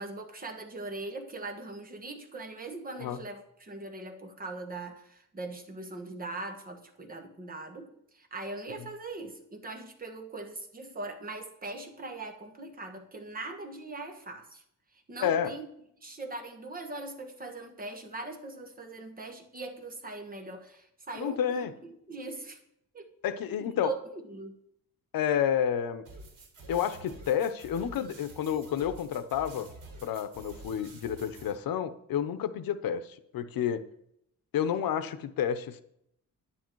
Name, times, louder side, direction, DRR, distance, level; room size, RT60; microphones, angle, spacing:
voice 1, 0.0-14.6 14.9-15.7 16.0-22.6 22.9-23.1 23.6-24.6, right 2 dB, 25° right, 4 dB, 1.4 m, -41 dB
voice 2, 15.2-15.5 21.2-21.7 23.2-23.9 25.1-26.0 26.7-29.7 30.0-33.9 34.5-35.8, left 9 dB, 85° left, 12 dB, 0.8 m, -30 dB
sound 1, 26.0-31.5, right 2 dB, 65° right, 3.3 m, -49 dB
10.0 x 9.9 x 4.6 m, 0.73 s
wide cardioid pair, 175°, 34 cm